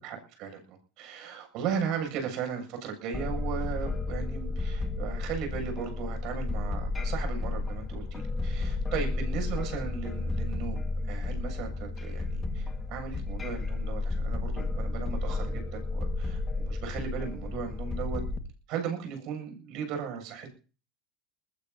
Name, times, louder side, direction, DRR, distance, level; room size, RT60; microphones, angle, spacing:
voice 1, 0.0-18.2 18.7-20.5, right 7 dB, 55° right, 4 dB, 7.7 m, -36 dB
sound 1, 3.1-18.4, left 3 dB, 15° left, 1.9 m, -32 dB
21.5 x 20.5 x 2.9 m, 0.37 s
supercardioid pair, 145°, 0 cm